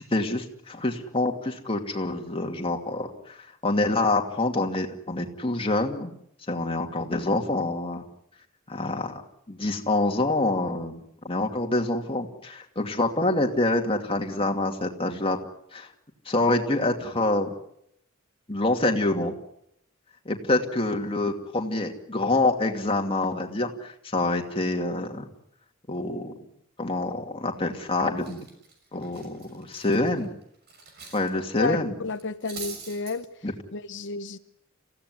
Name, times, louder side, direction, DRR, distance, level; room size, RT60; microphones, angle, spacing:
voice 1, 0.0-3.4 3.6-6.1 6.5-8.0 8.7-9.2 9.5-15.4 15.7-15.9 16.3-17.5 18.5-19.3 20.3-25.3 25.9-26.3 26.8-28.4 28.9-30.3 31.1-32.0 33.4-33.5, left 2 dB, 25° left, 3 dB, 2.5 m, -26 dB
Cutlery silverware, 27.6-27.8 28.2-31.3 31.6-31.7 32.1-33.1, right 4 dB, 50° right, 6.5 m, -43 dB
voice 2, 32.0-33.3 33.7-34.4, left 4 dB, 60° left, 11 dB, 1.0 m, -31 dB
27.5 x 16.0 x 9.7 m, 0.76 s
head